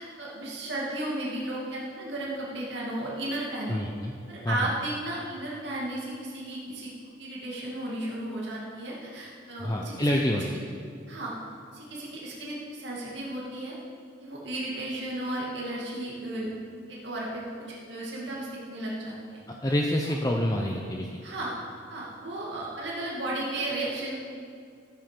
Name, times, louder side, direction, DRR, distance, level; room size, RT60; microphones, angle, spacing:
voice 1, 0.0-3.8 4.3-6.9 7.2-10.1 11.1-11.3 11.7-13.7 14.2-16.5 16.9-17.5 17.9-19.4 20.0-20.1 21.2-21.5 21.9-24.1, right 1 dB, 70° right, -5 dB, 2.3 m, -34 dB
voice 2, 3.7-4.1 4.4-4.6 9.6-10.6 19.6-21.1, left 1 dB, 20° left, 0 dB, 0.7 m, -27 dB
13.0 x 9.3 x 5.2 m, 2.4 s
head